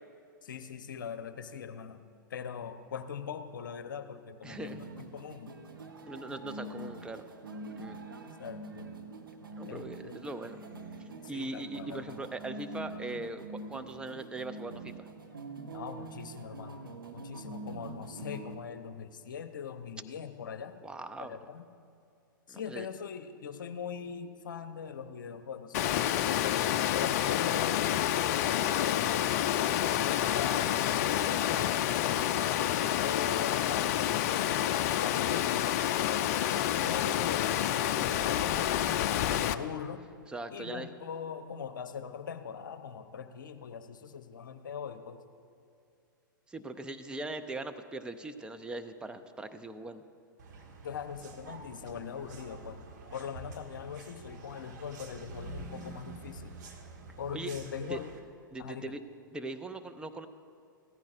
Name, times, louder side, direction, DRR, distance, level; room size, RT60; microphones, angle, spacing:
voice 1, 0.4-4.9 5.1-5.6 8.4-8.9 9.7-10.2 11.2-12.3 15.7-16.8 17.1-20.8 21.2-21.7 22.5-29.3 30.2-30.7 31.0-34.6 35.0-37.6 38.0-40.0 40.5-45.2 50.8-52.8 53.1-56.5 57.2-58.1 58.6-59.0, left 7 dB, 65° left, 10 dB, 0.8 m, -41 dB
voice 2, 4.4-4.8 6.1-7.2 7.8-8.0 9.6-10.6 11.3-15.1 20.8-21.4 22.5-22.9 26.9-27.2 37.9-38.1 40.3-40.9 46.5-50.0 57.3-57.5 57.9-58.0 58.5-59.0 59.3-60.3, right 2 dB, 10° right, 8 dB, 0.6 m, -40 dB
sound 1, 4.5-18.6, right 2 dB, 80° right, 1.1 m, -45 dB
Water, 25.7-39.5, left 11 dB, 45° left, 0.4 m, -28 dB
sound 2, 50.4-58.2, right 3 dB, 55° right, 1.5 m, -47 dB
16.5 x 14.5 x 2.6 m, 2.5 s
figure-of-eight pair, 105°, 11 cm